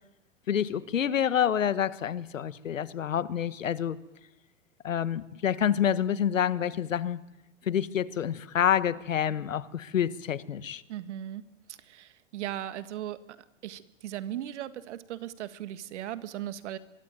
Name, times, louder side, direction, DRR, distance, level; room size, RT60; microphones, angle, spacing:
voice 1, 0.5-4.0 4.8-7.2 7.6-10.8, left 9 dB, 85° left, 16 dB, 1.5 m, -28 dB
voice 2, 10.9-13.2 13.6-16.8, right 12 dB, 65° right, 13 dB, 1.8 m, -38 dB
23.5 x 23.0 x 9.1 m, 0.96 s
hypercardioid pair, 120°, 38 cm